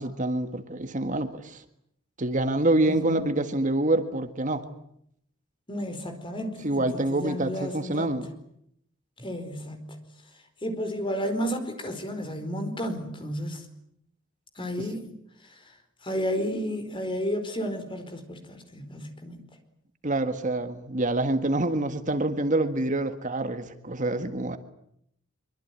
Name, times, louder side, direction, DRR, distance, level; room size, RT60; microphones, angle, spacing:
voice 1, 0.0-1.6 2.2-4.6 6.6-8.3 14.8-14.9 20.0-24.6, right 2 dB, 40° right, 9 dB, 1.7 m, -26 dB
voice 2, 2.9-3.2 5.7-8.2 9.2-9.9 10.6-13.6 14.6-15.1 16.0-19.4, equal, 25° left, 7 dB, 4.7 m, -32 dB
24.5 x 24.0 x 9.6 m, 0.73 s
head